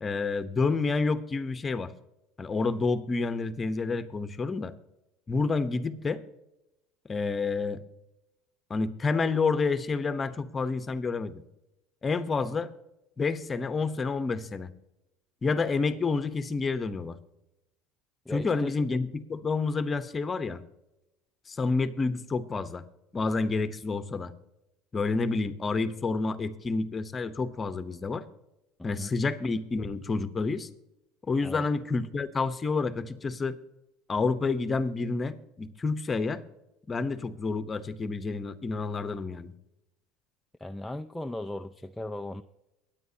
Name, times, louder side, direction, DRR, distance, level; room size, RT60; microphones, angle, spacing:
voice 1, 0.0-1.9 2.4-4.7 5.3-6.2 7.1-7.8 8.7-11.4 12.0-12.7 13.2-14.7 15.4-17.2 18.3-20.6 21.5-22.8 23.1-24.3 24.9-28.2 28.8-30.7 31.3-33.6 34.1-36.4 36.9-39.5, left 4 dB, 25° left, 11 dB, 0.9 m, -29 dB
voice 2, 18.3-18.7 29.0-29.1 31.4-31.7 40.6-42.4, left 1 dB, 5° left, 6 dB, 0.4 m, -37 dB
23.5 x 9.1 x 2.8 m, 0.92 s
supercardioid pair, 110°, 0 cm